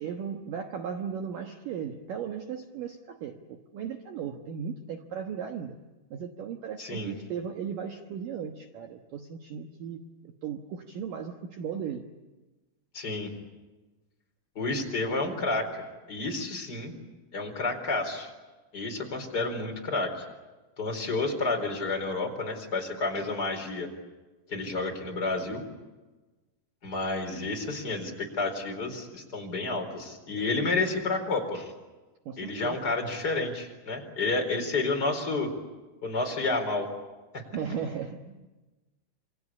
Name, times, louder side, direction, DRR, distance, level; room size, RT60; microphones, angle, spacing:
voice 1, 0.0-5.8 6.1-12.1 23.2-23.3 32.3-32.9 37.5-38.5, right 7 dB, 80° right, 4 dB, 1.9 m, -36 dB
voice 2, 6.8-7.1 12.9-13.3 14.5-15.8 16.1-16.9 17.3-18.3 18.7-20.2 20.8-23.9 24.5-25.6 26.8-31.7 32.4-35.5 36.0-36.9 37.3-37.4, left 3 dB, 20° left, 4 dB, 4.2 m, -30 dB
27.5 x 25.0 x 8.5 m, 1.2 s
omnidirectional pair, 5.9 m